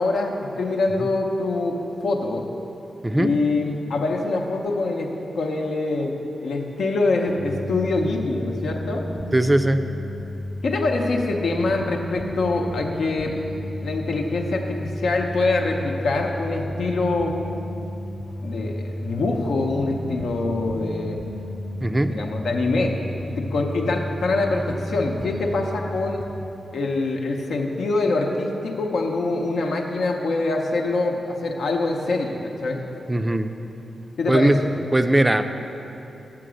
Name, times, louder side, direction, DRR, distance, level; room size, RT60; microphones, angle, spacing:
voice 1, 0.0-2.5 3.2-6.1 6.4-9.1 10.6-13.3 13.8-17.4 18.4-21.2 22.0-23.0 23.3-26.2 26.7-32.9 34.2-34.6, left 3 dB, 85° left, 2 dB, 0.8 m, -24 dB
sound 1, 7.3-26.3, left 1 dB, 55° left, 0.6 m, -33 dB
voice 2, 9.3-9.8 21.8-22.1 33.1-33.5 34.3-34.6 34.9-35.5, right 1 dB, 15° right, 8 dB, 0.3 m, -19 dB
6.9 x 5.9 x 6.2 m, 2.9 s
wide cardioid pair, 100°, 0 cm